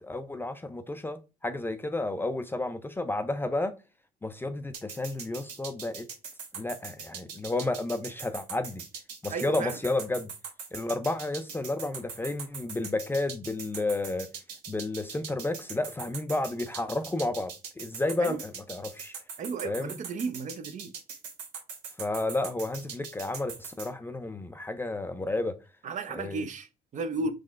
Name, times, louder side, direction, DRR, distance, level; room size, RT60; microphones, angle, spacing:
voice 1, 0.0-3.8 4.2-6.1 6.5-8.8 9.2-10.3 10.7-14.3 14.7-19.1 19.6-20.0 22.0-25.6 26.1-26.5, left 2 dB, 15° left, 0.4 m, -31 dB
sound 1, 4.7-23.9, right 6 dB, 80° right, 1.1 m, -41 dB
voice 2, 9.3-9.8 18.2-18.4 19.4-20.9 25.8-27.3, right 4 dB, 45° right, 0.6 m, -34 dB
3.8 x 3.1 x 2.3 m
cardioid pair, 110°, 17 cm